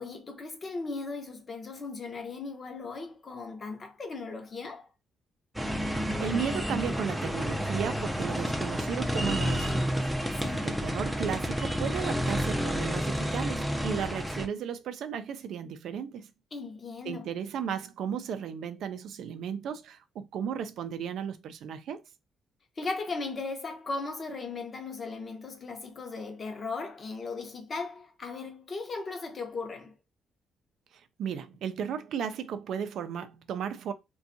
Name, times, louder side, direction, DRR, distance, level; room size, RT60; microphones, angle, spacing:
voice 1, 0.0-4.9 10.4-10.7 16.5-17.3 22.8-29.9, left 3 dB, 40° left, 0.7 m, -37 dB
sound 1, 5.5-14.5, equal, 5° right, 0.4 m, -30 dB
voice 2, 6.2-10.0 10.6-16.3 17.0-22.0 31.2-33.9, right 8 dB, 75° right, 0.3 m, -35 dB
2.6 x 2.2 x 2.5 m
cardioid pair, 100°, 0 cm